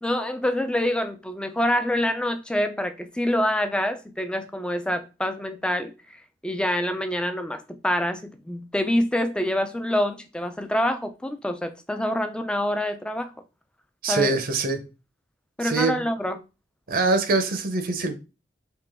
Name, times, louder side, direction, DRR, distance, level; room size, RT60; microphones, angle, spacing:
voice 1, 0.0-5.9 6.4-13.3 14.1-14.4 15.6-16.4, left 1 dB, 5° left, 0.3 m, -26 dB
voice 2, 14.0-14.8 15.6-16.0 16.9-18.2, right 3 dB, 55° right, 0.6 m, -23 dB
3.7 x 2.9 x 3.4 m
head